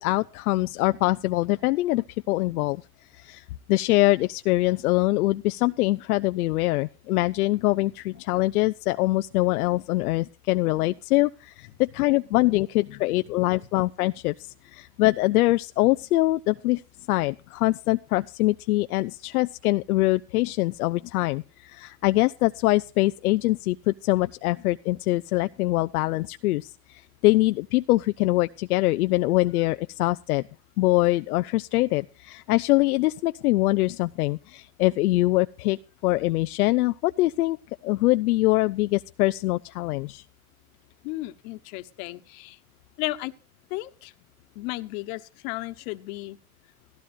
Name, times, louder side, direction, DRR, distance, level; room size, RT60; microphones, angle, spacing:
voice 1, 0.0-2.8 3.1-16.8 17.1-30.4 30.8-37.6 37.8-40.2, left 19 dB, 90° left, 0.5 m, -24 dB
voice 2, 12.5-13.6 41.0-42.6 43.0-43.3 43.7-44.1 44.5-46.4, left 19 dB, 70° left, 1.3 m, -35 dB
17.0 x 15.0 x 2.6 m
supercardioid pair, 100°, 43 cm